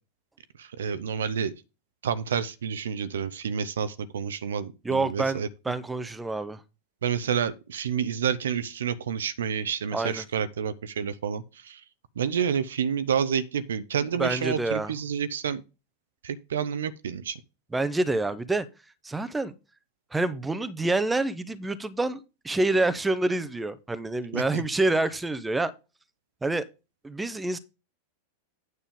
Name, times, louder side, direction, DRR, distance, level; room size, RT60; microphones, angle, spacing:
voice 1, 0.6-1.5 2.0-5.5 7.0-11.8 12.2-15.6 16.2-17.4 24.3-24.6, right 7 dB, 65° right, 0.7 m, -29 dB
voice 2, 4.8-6.6 9.9-10.2 14.2-14.9 17.7-18.7 19.0-19.5 20.1-25.7 26.4-26.6 27.0-27.6, right 2 dB, 10° right, 0.9 m, -27 dB
9.4 x 6.8 x 3.6 m
figure-of-eight pair, 90°, 0 cm